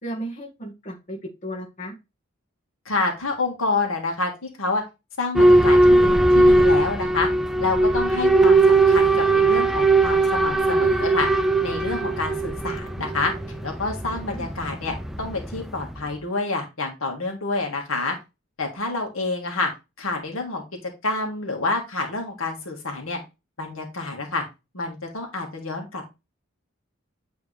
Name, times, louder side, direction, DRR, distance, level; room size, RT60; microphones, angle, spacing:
voice 1, 0.0-1.9 14.3-14.5, right 1 dB, 35° left, -1 dB, 1.6 m, -34 dB
voice 2, 2.9-4.8 5.2-7.3 7.6-11.3 11.6-13.3 13.6-18.2 18.6-19.7 20.0-20.6 21.0-23.2 23.6-24.4 24.7-26.1, left 3 dB, 85° left, 2 dB, 1.8 m, -28 dB
Boat Water vehicle / Alarm, 5.3-16.0, right 2 dB, ahead, 0.4 m, -19 dB
8.7 x 3.5 x 3.4 m, 0.25 s
head